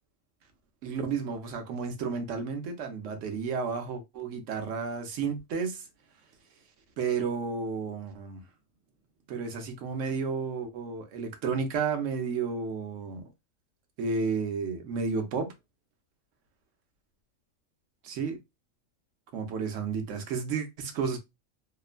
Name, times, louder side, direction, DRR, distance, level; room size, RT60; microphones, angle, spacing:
voice 1, 0.8-5.8 7.0-8.4 9.3-13.3 14.0-15.5 18.0-18.4 19.3-21.2, right 5 dB, 65° right, 0.9 m, -32 dB
2.9 x 2.1 x 2.4 m
omnidirectional pair, 1.5 m